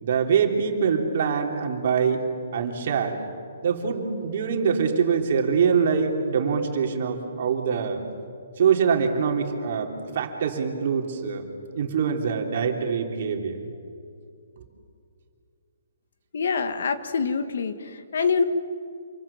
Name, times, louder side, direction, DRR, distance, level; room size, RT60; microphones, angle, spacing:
voice 1, 0.0-2.3 2.5-3.2 3.6-8.0 8.6-11.4 11.7-13.6, right 6 dB, 45° right, 3 dB, 3.3 m, -24 dB
voice 2, 16.3-18.4, left 5 dB, 65° left, 9 dB, 1.8 m, -25 dB
27.5 x 23.5 x 7.3 m, 2.4 s
hypercardioid pair, 165°, 0 cm